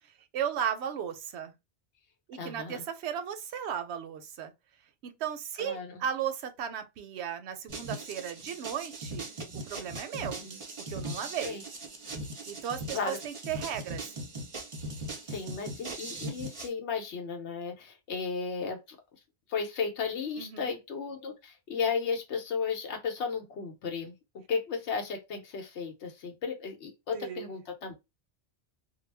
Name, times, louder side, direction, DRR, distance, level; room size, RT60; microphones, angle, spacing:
voice 1, 0.3-1.5 2.3-4.5 5.0-9.3 9.5-10.4 10.9-11.7 12.5-14.1 20.4-20.7 27.1-27.5, right 9 dB, 80° right, 0.8 m, -35 dB
voice 2, 2.4-2.9 5.6-6.0 10.1-10.6 11.4-11.6 12.9-13.2 15.2-19.0 19.5-24.1 24.5-27.9, left 5 dB, 90° left, 1.0 m, -34 dB
sound 1, 7.7-16.7, right 2 dB, 35° right, 0.6 m, -40 dB
2.3 x 2.0 x 3.2 m
omnidirectional pair, 1.1 m